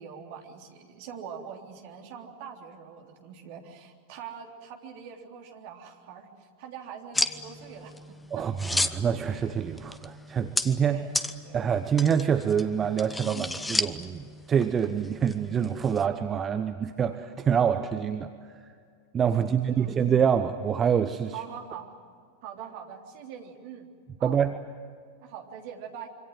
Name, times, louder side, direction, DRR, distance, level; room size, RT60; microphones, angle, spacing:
voice 1, 0.0-8.5 8.7-8.8 10.8-11.1 11.4-11.6 13.3-13.5 19.4-20.0 21.3-21.9 22.4-23.9 24.2-24.4 25.2-26.2, right 8 dB, 50° right, 2 dB, 3.5 m, -43 dB
sound 1, 7.1-16.1, left 2 dB, 10° left, 1.0 m, -34 dB
voice 2, 8.3-11.0 11.5-18.3 18.6-18.7 19.1-21.3 24.2-24.5, right 7 dB, 25° right, 10 dB, 1.0 m, -26 dB
26.5 x 25.5 x 7.7 m, 2.1 s
figure-of-eight pair, 90°, 0 cm